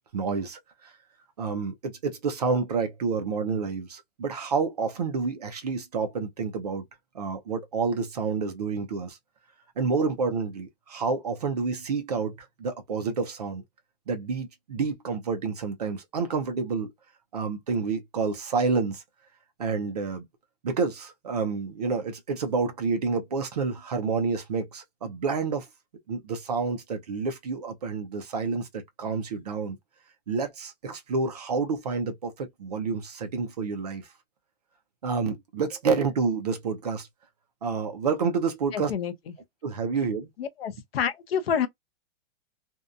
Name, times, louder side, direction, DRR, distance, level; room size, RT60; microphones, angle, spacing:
voice 1, 0.1-0.9 1.4-6.8 7.1-9.2 9.8-13.6 14.1-16.9 17.3-19.0 19.6-20.2 20.6-25.7 26.1-29.8 30.3-34.1 35.0-37.1 37.6-38.9 39.6-40.3, right 5 dB, 35° right, 0.4 m, -29 dB
voice 2, 38.7-39.1 40.4-41.7, left 8 dB, 55° left, 0.6 m, -28 dB
2.7 x 2.1 x 2.4 m
supercardioid pair, 180°, 35 cm